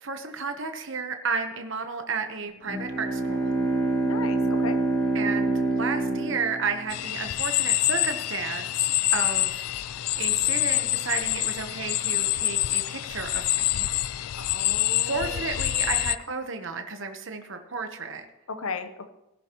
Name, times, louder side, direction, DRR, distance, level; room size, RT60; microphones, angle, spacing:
voice 1, 0.0-3.5 5.1-13.9 15.0-18.2, right 4 dB, 55° right, 6 dB, 1.1 m, -32 dB
Bowed string instrument, 2.7-7.2, right 2 dB, 10° left, 2.6 m, -26 dB
voice 2, 4.0-4.8 14.3-15.4 18.5-19.1, left 4 dB, 70° left, 10 dB, 0.9 m, -36 dB
sound 1, 6.9-16.2, left 16 dB, 90° left, 0.4 m, -26 dB
18.5 x 10.5 x 3.0 m, 0.94 s
head